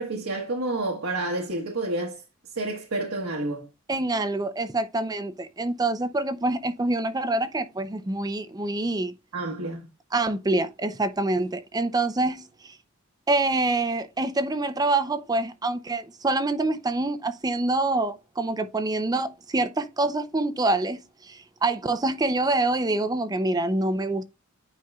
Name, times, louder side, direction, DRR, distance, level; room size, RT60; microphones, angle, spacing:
voice 1, 0.0-2.2 2.5-3.7 9.3-9.9, right 2 dB, 80° right, 1.3 m, -29 dB
voice 2, 3.9-9.1 10.1-12.8 13.3-24.2, right 2 dB, 20° right, 0.5 m, -26 dB
9.4 x 5.2 x 2.3 m
head